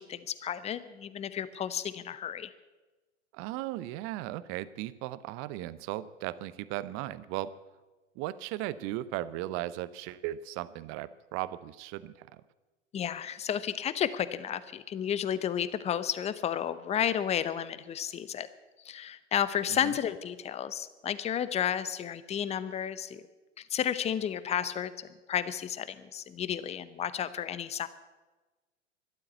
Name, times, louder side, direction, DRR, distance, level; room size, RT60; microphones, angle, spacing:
voice 1, 0.0-2.5 12.9-18.5 18.8-23.2 23.6-27.9, left 9 dB, 15° left, 15 dB, 0.7 m, -32 dB
voice 2, 3.3-7.5 8.2-12.4 19.7-19.9, right 15 dB, 35° right, 17 dB, 0.7 m, -37 dB
12.5 x 12.5 x 8.0 m, 1.2 s
figure-of-eight pair, 100°, 36 cm